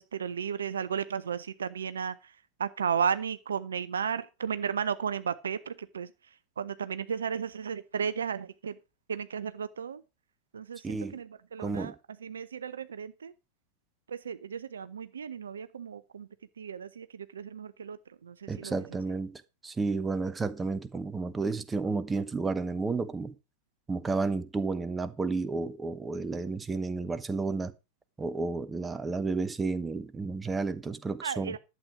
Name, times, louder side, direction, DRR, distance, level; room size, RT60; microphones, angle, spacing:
voice 1, 0.0-2.1 2.6-6.1 6.6-8.8 9.1-10.0 10.5-11.9 12.2-13.3 14.1-16.3 16.6-18.8 31.2-31.6, right 7 dB, 70° right, 0.7 m, -34 dB
voice 2, 10.8-11.2 11.6-12.0 18.5-23.3 23.9-27.7 28.2-31.6, right 4 dB, 15° right, 1.0 m, -32 dB
11.5 x 7.9 x 4.9 m
figure-of-eight pair, 90°, 0 cm